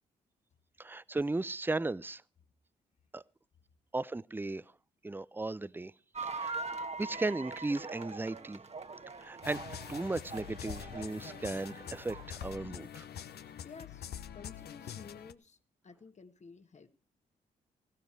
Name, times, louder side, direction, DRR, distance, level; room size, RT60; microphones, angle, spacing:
voice 1, 0.8-2.2 3.1-3.2 3.9-4.6 5.0-5.9 6.2-6.6 7.0-8.6 9.2-9.6 9.9-13.1, right 2 dB, 10° right, 0.6 m, -36 dB
sound 1, 6.1-12.5, right 3 dB, 35° right, 1.4 m, -43 dB
sound 2, 9.4-15.3, left 9 dB, 65° left, 0.9 m, -45 dB
voice 2, 13.6-15.6 15.8-16.9, left 5 dB, 40° left, 1.7 m, -52 dB
16.0 x 12.5 x 4.7 m
hypercardioid pair, 45°, 18 cm